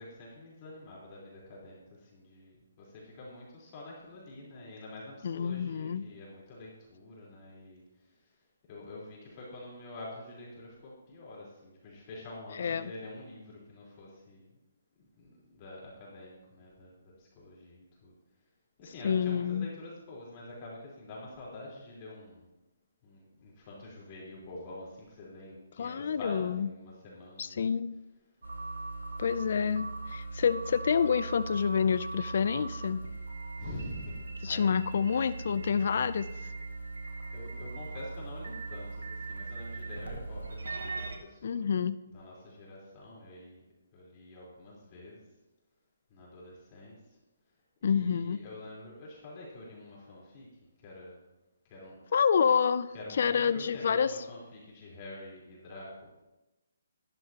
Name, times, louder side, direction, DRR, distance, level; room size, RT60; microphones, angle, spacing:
voice 1, 0.0-8.4 8.7-14.5 15.0-18.1 18.8-22.5 23.0-27.7 33.6-34.6 37.3-41.7 42.1-43.6 43.9-45.2 46.1-47.2 47.8-50.5 50.8-51.2 51.7-52.0 52.9-56.1, left 2 dB, 30° left, -6 dB, 4.0 m, -47 dB
voice 2, 5.2-6.0 12.6-12.9 19.0-19.7 25.8-26.7 27.4-27.9 29.2-33.0 34.4-36.3 41.4-42.0 47.8-48.4 52.1-54.1, left 6 dB, 60° left, 15 dB, 0.4 m, -28 dB
sound 1, 28.4-41.2, right 3 dB, 85° right, 1.7 m, -40 dB
14.0 x 11.0 x 2.9 m, 1.0 s
hypercardioid pair, 155°, 0 cm